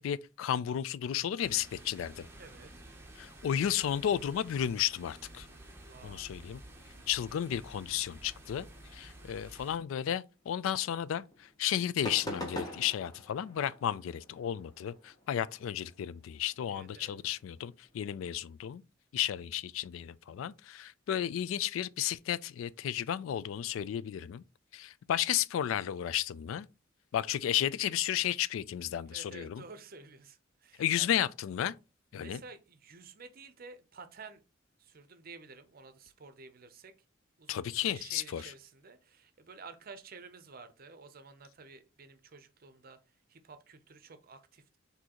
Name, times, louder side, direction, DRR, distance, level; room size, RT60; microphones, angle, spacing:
voice 1, 0.0-2.3 3.2-5.5 6.0-6.6 7.1-8.7 8.9-18.8 19.1-24.4 24.7-26.7 27.1-29.6 30.8-31.7 32.1-32.4 37.5-38.5, left 10 dB, 80° left, 0.3 m, -33 dB
sound 1, 1.4-9.8, right 1 dB, 10° right, 0.8 m, -52 dB
voice 2, 2.4-2.8 5.8-6.3 16.7-17.2 29.1-31.1 32.1-34.4 34.8-36.9 37.4-43.0 43.3-44.8, right 4 dB, 45° right, 0.6 m, -51 dB
sound 2, 10.8-10.9 11.3-11.5 11.8-18.5, equal, 20° left, 1.0 m, -44 dB
6.1 x 2.7 x 2.9 m
head